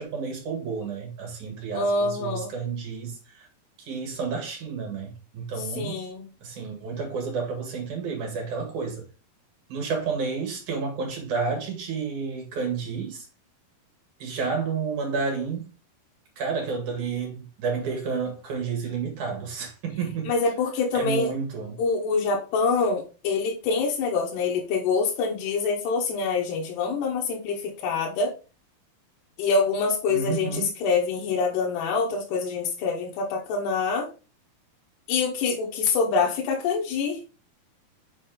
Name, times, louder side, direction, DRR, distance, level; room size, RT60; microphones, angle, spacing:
voice 1, 0.0-3.5 3.8-6.0 6.4-9.0 9.7-13.3 14.2-15.7 16.4-20.3 20.9-21.8 30.1-30.7, right 5 dB, 55° right, 2.8 m, -30 dB
voice 2, 1.7-2.5 5.8-6.3 20.2-21.3 21.8-28.3 29.4-34.1 35.1-37.2, left 4 dB, 85° left, 3.3 m, -25 dB
7.6 x 4.3 x 3.8 m
omnidirectional pair, 4.6 m